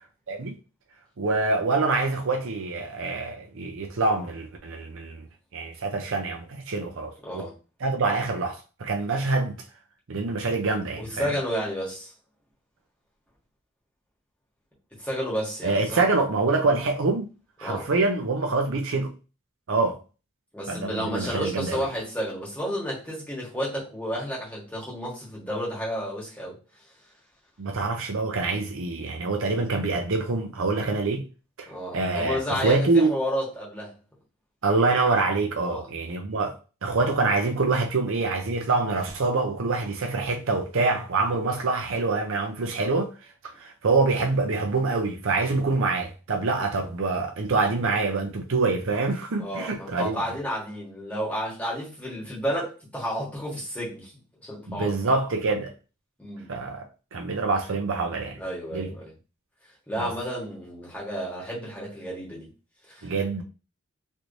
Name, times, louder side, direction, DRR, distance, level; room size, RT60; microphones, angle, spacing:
voice 1, 1.2-5.2 5.5-7.5 7.8-9.6 10.1-11.3 15.6-17.3 17.6-19.1 19.7-20.0 20.7-21.9 27.6-31.2 31.6-33.1 34.6-43.1 43.6-50.2 54.7-55.7 56.5-56.8 57.1-58.4 58.7-58.9 60.0-60.1 63.0-63.4, right 3 dB, 60° right, 0.6 m, -25 dB
voice 2, 7.2-7.6 11.0-12.1 15.0-16.0 17.6-17.9 20.5-26.6 31.7-34.0 35.6-35.9 49.4-54.1 54.4-55.0 56.2-56.5 58.4-59.1 59.9-62.5 62.9-63.1, equal, 5° left, 1.4 m, -31 dB
3.2 x 3.1 x 2.6 m
head